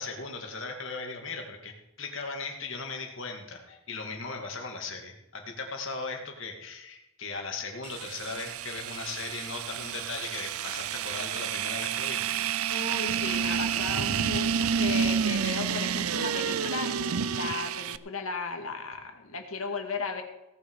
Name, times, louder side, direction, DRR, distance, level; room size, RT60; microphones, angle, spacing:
voice 1, 0.0-1.7 2.0-12.4, left 4 dB, 60° left, 3 dB, 2.5 m, -38 dB
sound 1, 7.8-18.0, right 7 dB, 85° right, 0.5 m, -29 dB
voice 2, 12.7-20.2, left 4 dB, 75° left, 5 dB, 2.0 m, -35 dB
17.5 x 9.7 x 4.9 m, 0.91 s
head